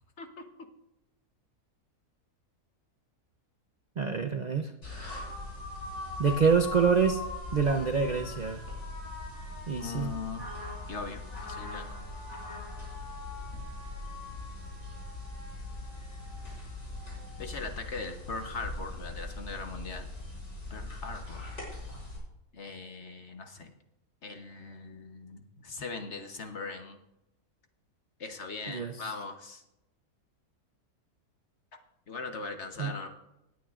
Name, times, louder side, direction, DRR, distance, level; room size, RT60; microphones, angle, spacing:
voice 1, 4.0-4.7 6.2-7.2 7.5-8.6 9.7-10.1 28.7-29.1 32.8-32.9, right 5 dB, 80° right, 7 dB, 0.4 m, -26 dB
sound 1, 4.8-22.2, left 2 dB, 80° left, 4.7 m, -40 dB
voice 2, 9.8-10.4 10.9-12.0 17.4-20.1 20.7-21.5 22.5-23.7 24.2-27.0 28.2-29.6 32.1-33.1, left 4 dB, 50° left, 5 dB, 1.2 m, -40 dB
18.0 x 9.4 x 2.4 m, 0.88 s
omnidirectional pair, 1.6 m